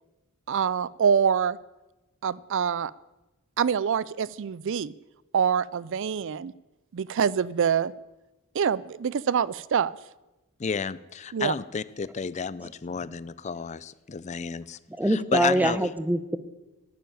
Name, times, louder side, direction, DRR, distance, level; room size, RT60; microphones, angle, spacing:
voice 1, 0.5-1.6 2.2-2.9 3.6-4.9 5.3-6.5 6.9-7.9 8.5-10.0 11.3-11.5 15.4-15.5, right 7 dB, 60° right, 20 dB, 0.4 m, -25 dB
voice 2, 10.6-14.8 15.1-15.9, left 5 dB, 30° left, 17 dB, 0.4 m, -31 dB
voice 3, 15.0-16.4, right 1 dB, 5° right, 13 dB, 0.7 m, -24 dB
11.5 x 10.5 x 9.2 m, 1.0 s
head